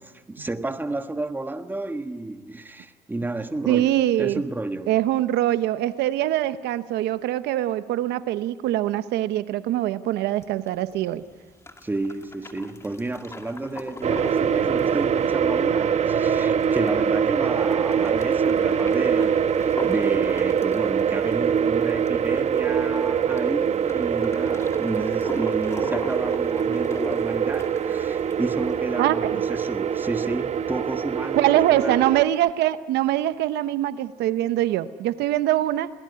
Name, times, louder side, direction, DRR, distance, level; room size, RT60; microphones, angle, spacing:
voice 1, 0.0-5.0 11.8-32.0, right 2 dB, 10° right, 1.4 m, -31 dB
voice 2, 3.7-4.4 4.9-11.2 29.0-29.4 31.3-35.9, right 13 dB, 80° right, 0.9 m, -23 dB
sound 1, 10.4-28.8, left 2 dB, 15° left, 2.5 m, -41 dB
sound 2, 14.0-32.2, right 7 dB, 40° right, 1.1 m, -23 dB
29.0 x 19.5 x 9.7 m
cardioid pair, 110°, 17 cm